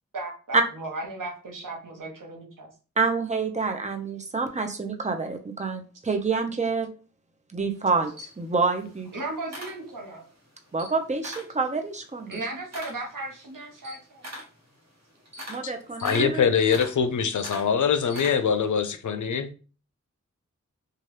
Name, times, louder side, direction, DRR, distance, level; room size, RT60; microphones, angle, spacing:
voice 1, 0.1-2.7 9.1-10.2 12.3-14.2, right 2 dB, 85° right, 0 dB, 1.0 m, -36 dB
voice 2, 3.0-6.9 7.5-9.1 10.7-12.4 15.5-16.5, right 4 dB, 25° right, 4 dB, 0.6 m, -27 dB
Camera, 7.8-10.3 10.7-11.6 12.0-18.7, equal, 55° right, 1.0 m, -42 dB
voice 3, 16.0-19.5, left 6 dB, 70° left, 10 dB, 0.5 m, -23 dB
3.0 x 2.4 x 3.1 m, 0.36 s
wide cardioid pair, 55°, 31 cm